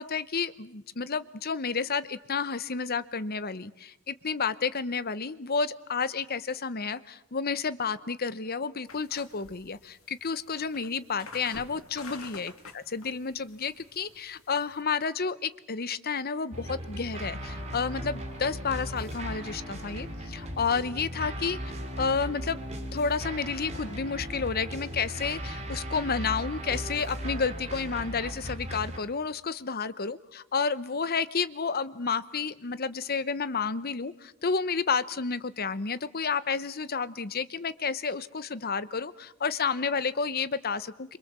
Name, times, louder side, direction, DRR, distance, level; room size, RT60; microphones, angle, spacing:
voice 1, 0.0-21.6 22.0-22.6 22.9-41.2, left 5 dB, 45° left, 16 dB, 0.9 m, -31 dB
sound 1, 8.9-14.8, left 4 dB, 65° left, 2.8 m, -48 dB
sound 2, 16.5-29.0, equal, 30° right, 4.3 m, -37 dB
27.5 x 25.0 x 7.5 m, 0.85 s
head